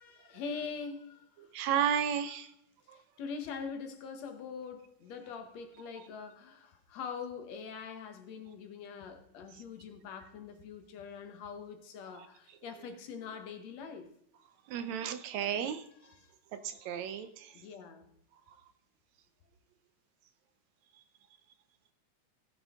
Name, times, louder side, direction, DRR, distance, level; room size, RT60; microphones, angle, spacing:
voice 1, 0.0-1.5 2.9-14.1 16.0-16.3 17.5-18.1, left 5 dB, 65° left, 6 dB, 2.2 m, -43 dB
voice 2, 1.5-2.5 2.9-3.0 12.2-12.3 14.7-15.8 16.5-17.5, right 8 dB, 75° right, 11 dB, 1.9 m, -33 dB
16.5 x 8.9 x 3.7 m, 0.75 s
omnidirectional pair, 3.5 m